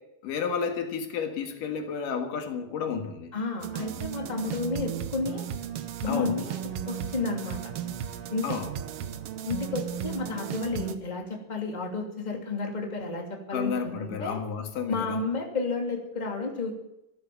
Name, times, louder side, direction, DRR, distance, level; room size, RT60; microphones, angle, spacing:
voice 1, 0.2-3.3 6.1-6.4 8.4-8.7 13.5-15.2, left 6 dB, 80° left, 3.2 m, -31 dB
voice 2, 3.3-5.5 6.0-7.6 8.3-8.6 9.4-14.4 14.9-16.7, left 3 dB, 15° left, 2.5 m, -32 dB
sound 1, 3.6-10.9, right 9 dB, 65° right, 1.5 m, -35 dB
14.5 x 12.0 x 7.1 m
omnidirectional pair, 3.8 m